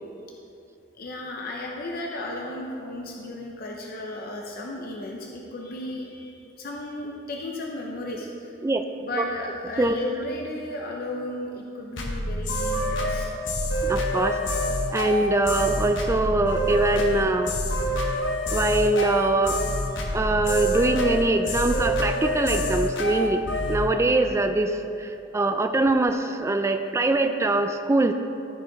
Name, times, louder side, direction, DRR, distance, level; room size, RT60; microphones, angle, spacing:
voice 1, 1.0-8.5 9.0-13.3 14.9-15.0 17.8-18.1 19.9-20.0, left 1 dB, 55° left, -1 dB, 0.7 m, -34 dB
sound 1, 12.0-23.8, left 1 dB, 75° left, 1.1 m, -26 dB
voice 2, 13.9-14.4 14.9-17.5 18.5-19.6 20.1-28.1, right 2 dB, 15° right, 6 dB, 0.3 m, -23 dB
13.5 x 4.8 x 3.9 m, 2.6 s
head